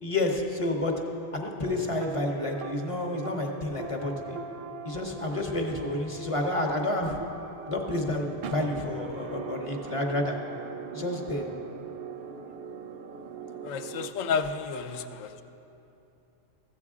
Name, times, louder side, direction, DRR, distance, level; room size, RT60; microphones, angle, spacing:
voice 1, 0.0-0.9 1.3-4.4 4.8-7.2 7.7-10.4 10.9-11.5, left 1 dB, 30° left, 2 dB, 0.7 m, -30 dB
sound 1, 1.6-14.1, right 6 dB, 65° right, 0.7 m, -41 dB
voice 2, 13.6-15.4, left 5 dB, 80° left, 9 dB, 0.9 m, -31 dB
14.5 x 7.7 x 3.6 m, 2.9 s
omnidirectional pair, 1.3 m